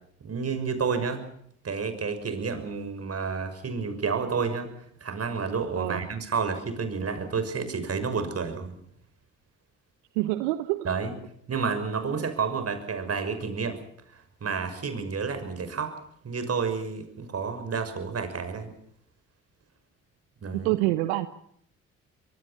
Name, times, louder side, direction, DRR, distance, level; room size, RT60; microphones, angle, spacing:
voice 1, 0.2-1.2 1.6-4.7 5.0-8.7 10.8-11.2 11.5-13.8 14.1-15.9 16.2-18.7 20.4-20.7, right 5 dB, 45° right, 9 dB, 6.2 m, -30 dB
voice 2, 5.8-6.1 10.1-10.8 20.5-21.3, right 17 dB, 80° right, 12 dB, 1.0 m, -26 dB
25.0 x 23.0 x 6.0 m, 0.68 s
hypercardioid pair, 50°, 34 cm